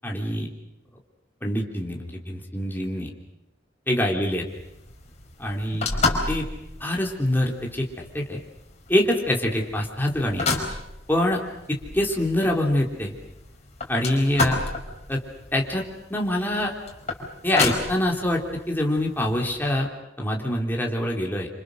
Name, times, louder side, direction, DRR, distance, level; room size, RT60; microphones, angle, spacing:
voice 1, 0.0-0.5 1.4-3.1 3.9-4.4 5.4-5.8 6.3-6.4 6.8-7.9 8.1-8.4 8.9-10.5 11.1-11.4 11.7-13.1 13.9-14.6 15.1-15.2 15.5-16.7 17.4-18.4 18.7-19.9 20.2-21.5, left 1 dB, 10° left, -1 dB, 3.6 m, -24 dB
sound 1, 4.5-19.8, left 3 dB, 40° left, 4.7 m, -32 dB
27.5 x 27.0 x 6.5 m, 0.89 s
head